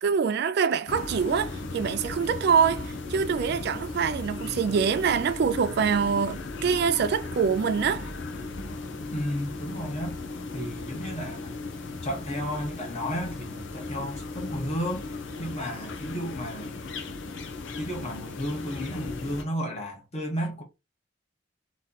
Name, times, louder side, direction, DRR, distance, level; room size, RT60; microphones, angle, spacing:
voice 1, 0.0-8.1, right 6 dB, 55° right, 0.3 m, -25 dB
sound 1, 0.9-19.4, left 3 dB, 70° left, 0.7 m, -36 dB
voice 2, 9.1-10.2 10.5-11.6 12.0-16.7 17.8-20.6, equal, 35° left, 1.2 m, -33 dB
3.1 x 2.9 x 3.8 m
head